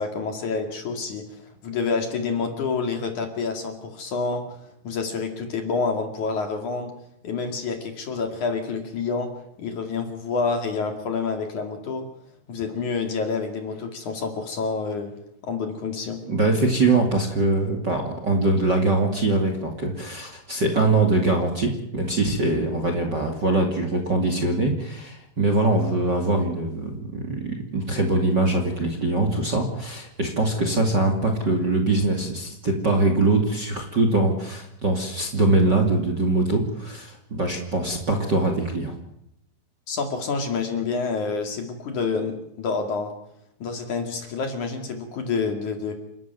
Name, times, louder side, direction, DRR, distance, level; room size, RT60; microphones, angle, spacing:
voice 1, 0.0-4.4 4.8-6.9 7.2-9.3 9.6-12.0 12.5-15.1 15.4-16.2 39.9-43.1 43.6-45.9, left 4 dB, 50° left, 5 dB, 3.4 m, -28 dB
voice 2, 16.3-38.9, right 2 dB, 30° right, 4 dB, 2.5 m, -23 dB
28.5 x 13.0 x 9.4 m, 0.78 s
omnidirectional pair, 4.8 m